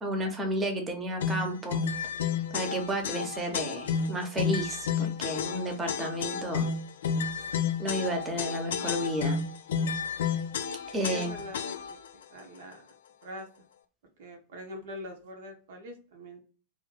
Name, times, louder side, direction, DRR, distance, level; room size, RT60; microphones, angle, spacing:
voice 1, 0.0-1.8 2.5-6.7 7.8-9.4 10.9-11.4, right 1 dB, 15° right, 4 dB, 0.8 m, -32 dB
sound 1, 1.2-12.1, left 6 dB, 60° left, 0.3 m, -31 dB
voice 2, 11.0-12.8 13.2-13.5 14.2-16.4, equal, 55° right, 3 dB, 0.6 m, -43 dB
2.5 x 2.4 x 3.5 m, 0.37 s
figure-of-eight pair, 90°, 0 cm